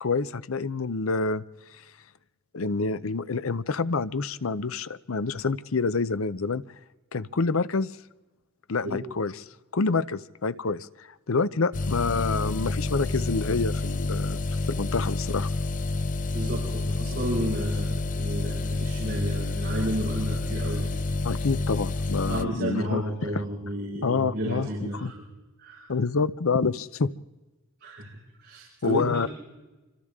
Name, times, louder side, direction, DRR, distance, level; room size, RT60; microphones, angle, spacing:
voice 1, 0.0-1.4 1.7-1.8 2.5-6.6 7.1-7.9 8.7-9.4 9.7-15.5 21.2-23.0 24.0-25.1 25.9-27.1 28.8-29.3, left 4 dB, 85° left, 15 dB, 0.7 m, -27 dB
sound 1, 11.7-22.4, left 2 dB, 40° left, 0.6 m, -29 dB
voice 2, 16.3-20.9 22.2-25.1 25.6-25.9 27.8-29.2, right 1 dB, 55° right, -4 dB, 6.0 m, -32 dB
28.5 x 25.5 x 3.7 m, 1.1 s
head